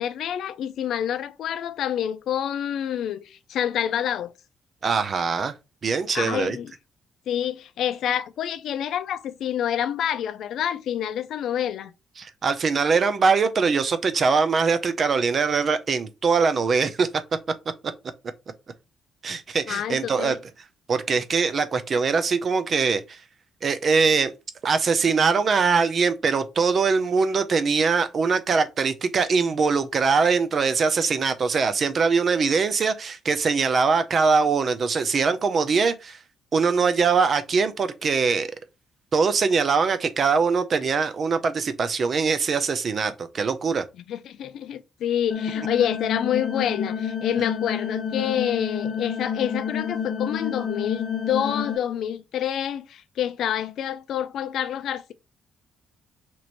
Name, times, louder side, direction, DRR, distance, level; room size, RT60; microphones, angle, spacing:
voice 1, 0.0-4.3 6.1-6.7 7.3-11.9 19.7-20.4 44.1-55.1, left 10 dB, 75° left, 0.4 m, -27 dB
voice 2, 4.8-5.5 5.8-6.6 12.2-17.1 19.2-20.4 20.9-23.2 23.6-24.3 24.6-36.2 36.5-38.5 39.1-43.8, right 5 dB, 45° right, 0.5 m, -22 dB
sound 1, 45.3-51.8, left 7 dB, 50° left, 0.7 m, -29 dB
3.0 x 2.5 x 4.4 m
cardioid pair, 90°, 0 cm